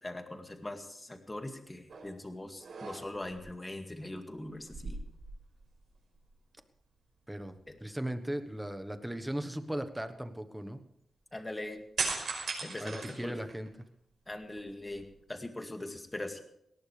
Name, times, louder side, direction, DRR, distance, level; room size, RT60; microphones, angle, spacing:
voice 1, 0.0-5.0 7.7-7.8 11.3-11.8 12.6-13.4 14.3-16.4, left 1 dB, 15° left, 5 dB, 2.1 m, -41 dB
sound 1, 1.9-2.2 2.6-3.4 4.6-5.9 6.2-6.3 12.0-13.8 14.3-15.2, right 4 dB, 65° right, 5.5 m, -38 dB
voice 2, 7.3-10.8 12.8-13.7, right 1 dB, 5° right, 8 dB, 1.3 m, -37 dB
19.0 x 18.0 x 3.4 m, 0.77 s
wide cardioid pair, 125°, 0 cm